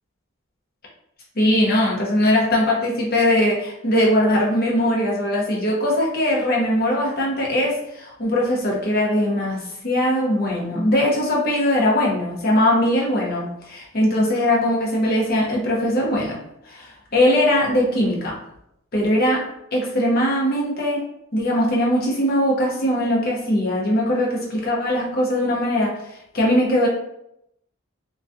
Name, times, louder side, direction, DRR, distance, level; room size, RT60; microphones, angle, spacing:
voice 1, 1.4-16.4 16.7-18.4 18.9-19.4 19.7-21.0 21.3-25.9 26.3-26.9, left 1 dB, 45° left, -3 dB, 0.7 m, -20 dB
2.3 x 2.2 x 2.5 m, 0.79 s
head